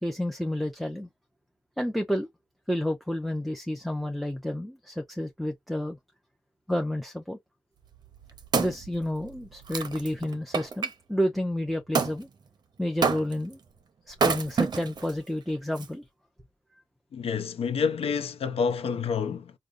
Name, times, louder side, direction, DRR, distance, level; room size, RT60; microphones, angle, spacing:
voice 1, 0.0-1.1 1.8-2.3 2.7-6.0 6.7-7.4 8.6-12.3 12.8-13.6 14.1-16.0, left 1 dB, ahead, 0.5 m, -30 dB
Wood, 7.9-10.9 11.9-12.2 13.0-13.5 14.1-15.1 15.8-15.9, right 5 dB, 45° right, 0.6 m, -28 dB
voice 2, 17.1-19.5, left 6 dB, 80° left, 0.6 m, -28 dB
4.9 x 2.2 x 2.5 m
wide cardioid pair, 160°, 10 cm